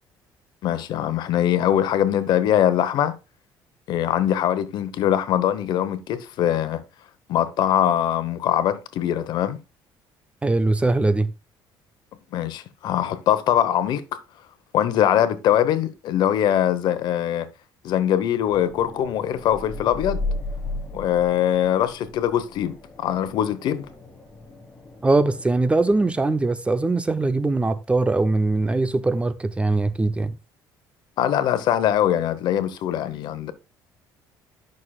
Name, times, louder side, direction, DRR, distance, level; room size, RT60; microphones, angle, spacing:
voice 1, 0.6-3.1 3.9-6.8 7.3-9.6 12.3-14.0 14.7-17.5 17.8-20.2 20.9-23.9 31.2-33.5, left 10 dB, 65° left, 0.9 m, -22 dB
voice 2, 10.4-11.3 25.0-30.4, right 2 dB, 15° right, 0.5 m, -21 dB
sound 1, 18.5-26.1, left 2 dB, 20° left, 1.7 m, -35 dB
11.0 x 6.3 x 2.3 m
cardioid pair, 120°, 8 cm